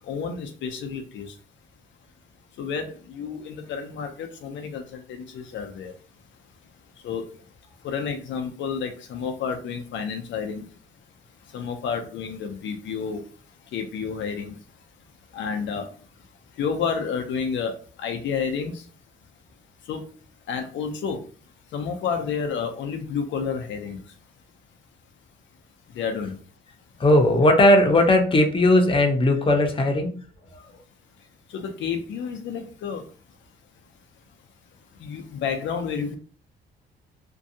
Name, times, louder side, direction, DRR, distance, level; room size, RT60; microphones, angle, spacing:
voice 1, 0.1-1.3 2.6-5.9 7.0-7.2 7.8-10.6 11.5-13.2 13.7-14.5 15.3-15.9 16.6-17.7 18.0-18.7 19.9-20.0 20.5-21.2 21.7-24.0 26.0-26.4 31.5-33.0 35.0-36.2, left 6 dB, 70° left, 0.5 m, -30 dB
voice 2, 27.0-30.1 30.5-30.7, left 1 dB, 25° left, 0.6 m, -18 dB
2.6 x 2.2 x 2.6 m
cardioid pair, 90°, 20 cm